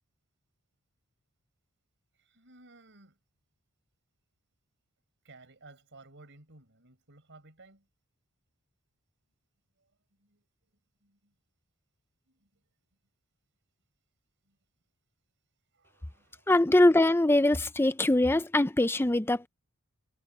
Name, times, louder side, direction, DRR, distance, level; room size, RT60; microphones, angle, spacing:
voice 1, 2.2-3.2 5.2-7.9 10.2-10.4 11.0-11.3 12.3-12.5 14.5-14.6 15.7-16.5, right 2 dB, 55° right, 5.4 m, -56 dB
voice 2, 16.5-19.5, left 1 dB, 10° left, 0.6 m, -23 dB
head